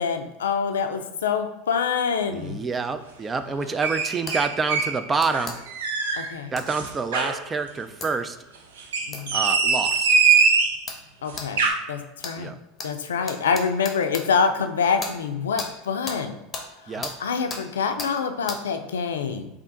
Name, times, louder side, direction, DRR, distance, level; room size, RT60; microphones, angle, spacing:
voice 1, 0.0-2.6 3.5-3.6 6.2-6.5 9.1-9.4 11.2-12.5 12.8-16.4 16.8-19.5, left 6 dB, 85° left, 7 dB, 0.4 m, -26 dB
voice 2, 2.3-5.5 6.5-8.4 9.3-10.1 12.4-12.6 16.9-17.1, right 4 dB, 25° right, 10 dB, 0.3 m, -27 dB
sound 1, 3.8-5.0 5.3-6.3 6.7-7.4 8.8-10.8 11.3-11.7, right 5 dB, 80° right, 0.5 m, -22 dB
sound 2, 4.3-4.4 5.2-5.6 6.6-6.7 8.0-8.1 9.1-9.2 9.9-10.0 10.9-11.0 11.4-11.5 12.2-12.4 12.8-12.9 13.3-14.2 15.0-15.1 15.6-15.7 16.1-16.2 16.5-16.7 17.0-17.2 17.5-17.6 18.0-18.1 18.5-18.6, left 3 dB, 25° left, 0.8 m, -34 dB
3.5 x 2.5 x 3.9 m, 0.96 s
hypercardioid pair, 85°, 0 cm